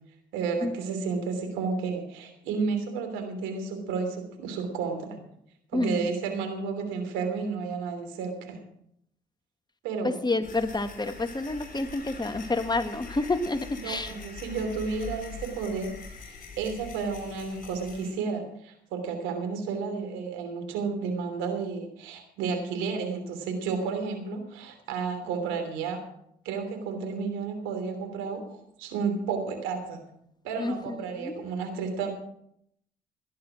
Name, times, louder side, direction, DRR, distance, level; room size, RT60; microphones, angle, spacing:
voice 1, 0.3-5.2 5.7-8.6 9.8-10.2 13.7-15.9 16.3-26.0 26.4-30.0 30.4-32.1, right 5 dB, 80° right, 5 dB, 3.1 m, -32 dB
voice 2, 5.7-6.1 10.0-14.1 30.6-31.4, left 2 dB, 20° left, 9 dB, 1.7 m, -29 dB
sound 1, 10.4-18.1, left 4 dB, 45° left, 5.6 m, -43 dB
17.5 x 10.5 x 6.2 m, 0.73 s
hypercardioid pair, 50°, 19 cm